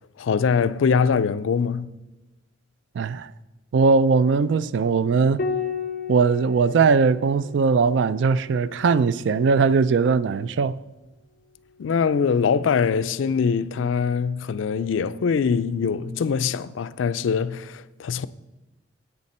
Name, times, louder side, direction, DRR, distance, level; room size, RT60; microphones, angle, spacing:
voice 1, 0.2-1.9 11.8-18.3, left 6 dB, 85° left, 0.4 m, -23 dB
voice 2, 3.0-3.3 3.7-5.4 6.1-10.8, right 5 dB, 65° right, 0.3 m, -20 dB
Piano, 5.4-10.2 11.9-12.7, left 5 dB, 55° left, 0.9 m, -35 dB
10.5 x 8.3 x 4.2 m
head